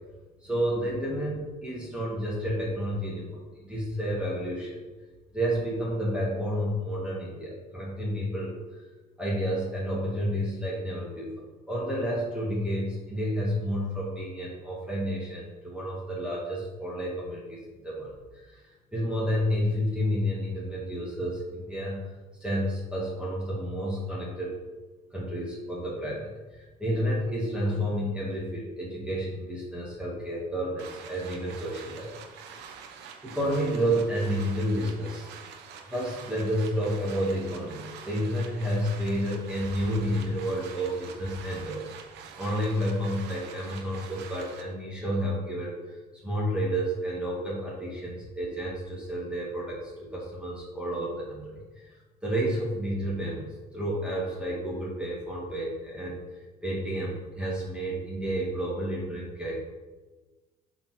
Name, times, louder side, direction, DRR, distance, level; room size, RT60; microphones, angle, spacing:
voice 1, 0.4-4.8 5.3-8.9 9.2-22.1 22.4-24.6 25.1-32.1 32.4-32.7 33.2-35.3 35.9-41.9 42.4-52.0 52.2-59.5, equal, 5° right, -6 dB, 2.2 m, -30 dB
sound 1, 30.8-44.6, right 6 dB, 90° right, 1.0 m, -46 dB
7.0 x 4.8 x 6.1 m, 1.3 s
cardioid pair, 110°, 17 cm